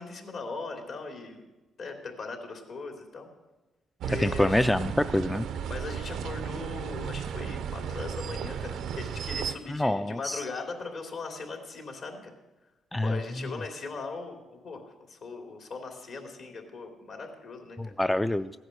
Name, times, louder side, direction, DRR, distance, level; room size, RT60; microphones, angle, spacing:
voice 1, 0.0-1.4 1.8-3.3 4.0-4.6 5.7-12.3 13.0-17.9, left 4 dB, 60° left, 3 dB, 2.8 m, -39 dB
sound 1, 4.0-9.5, right 8 dB, 75° right, 0.6 m, -34 dB
voice 2, 4.1-5.4 9.7-10.5 12.9-13.2 17.8-18.5, left 1 dB, 10° left, 11 dB, 0.4 m, -26 dB
15.5 x 9.8 x 6.4 m, 1.1 s
cardioid pair, 90°, 0 cm